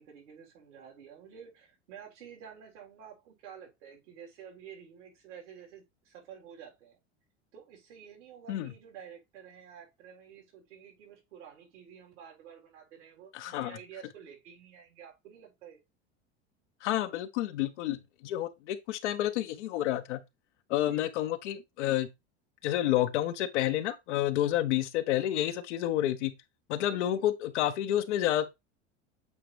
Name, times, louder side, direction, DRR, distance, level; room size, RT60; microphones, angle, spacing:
voice 1, 0.0-7.0 7.5-15.8 20.7-21.1 26.8-27.3, right 8 dB, 80° right, 4.0 m, -50 dB
voice 2, 13.3-13.7 16.8-20.2 20.7-22.1 22.6-26.3 26.7-28.5, left 13 dB, 80° left, 1.0 m, -29 dB
8.4 x 4.0 x 3.3 m
hypercardioid pair, 100°, 35 cm